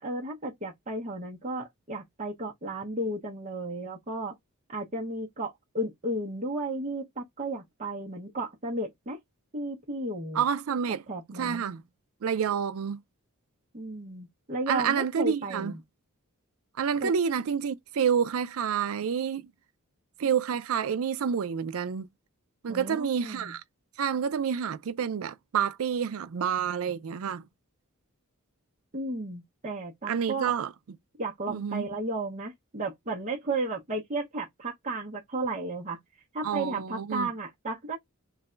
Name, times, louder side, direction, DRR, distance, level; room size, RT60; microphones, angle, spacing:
voice 1, 0.0-4.3 4.7-9.2 9.5-10.4 11.1-11.7 13.7-15.8 17.0-17.1 22.7-23.5 28.9-30.5 31.2-36.0 36.3-38.0, right 2 dB, 30° right, 0.8 m, -34 dB
voice 2, 10.3-11.0 11.4-11.8 12.2-13.0 14.7-15.7 16.8-19.5 20.2-22.1 22.6-23.6 24.0-27.4 30.1-30.7 31.5-31.9 36.4-37.3, right 7 dB, 65° right, 0.4 m, -28 dB
3.3 x 2.2 x 3.7 m
head